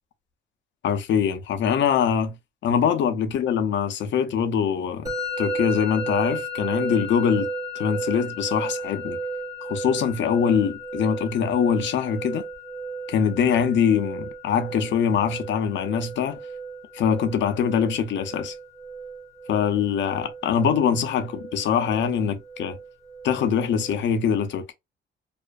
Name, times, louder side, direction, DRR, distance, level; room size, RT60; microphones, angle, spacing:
voice 1, 0.8-2.4 2.6-7.5 7.8-9.2 9.6-12.5 13.1-16.4 16.9-18.5 19.5-22.8 23.2-24.7, left 7 dB, 70° left, 0.5 m, -23 dB
Musical instrument, 5.1-24.0, right 2 dB, 15° right, 0.8 m, -34 dB
2.4 x 2.1 x 2.4 m
cardioid pair, 90°, 20 cm